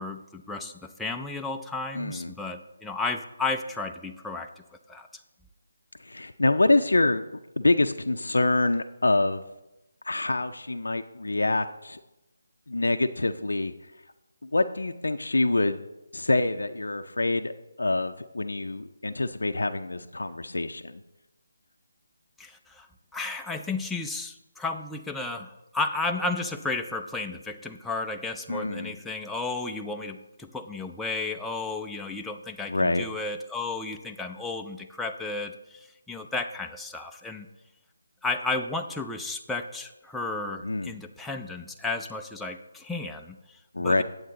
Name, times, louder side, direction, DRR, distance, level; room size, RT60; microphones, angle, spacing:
voice 1, 0.0-4.5 4.9-5.1 22.4-22.9 23.1-37.5 38.2-44.0, left 3 dB, 5° left, 2 dB, 0.4 m, -33 dB
voice 2, 1.9-2.3 6.0-7.2 7.6-9.4 10.0-12.0 12.7-13.7 14.4-15.8 16.1-21.0 28.5-28.9 32.7-33.0 40.6-40.9 43.7-44.0, left 2 dB, 85° left, 7 dB, 0.4 m, -26 dB
9.1 x 7.8 x 3.8 m, 0.96 s
figure-of-eight pair, 160°, 0 cm